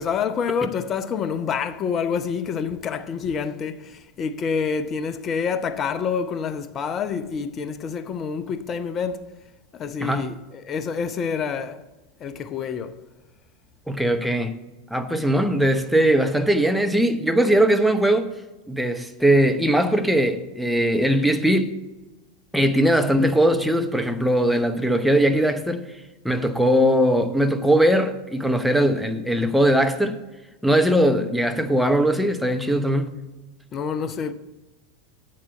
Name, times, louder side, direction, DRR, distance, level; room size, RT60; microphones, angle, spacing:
voice 1, 0.0-9.3 9.7-11.8 12.2-13.0 33.7-34.3, left 6 dB, 30° left, 0.7 m, -27 dB
voice 2, 10.0-10.4 13.9-14.6 14.9-18.3 18.7-21.8 22.5-25.9 26.2-30.2 30.6-33.2, right 1 dB, ahead, 0.9 m, -20 dB
8.2 x 7.6 x 7.1 m
figure-of-eight pair, 85°, 0 cm